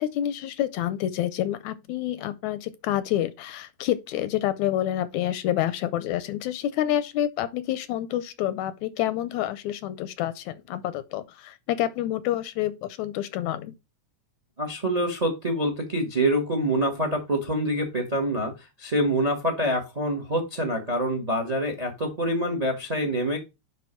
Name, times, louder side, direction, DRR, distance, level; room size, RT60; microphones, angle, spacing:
voice 1, 0.0-12.7 13.0-13.7, left 12 dB, 80° left, 1.8 m, -28 dB
voice 2, 14.6-23.4, right 1 dB, 45° right, 0.5 m, -26 dB
10.5 x 3.5 x 4.4 m
omnidirectional pair, 3.6 m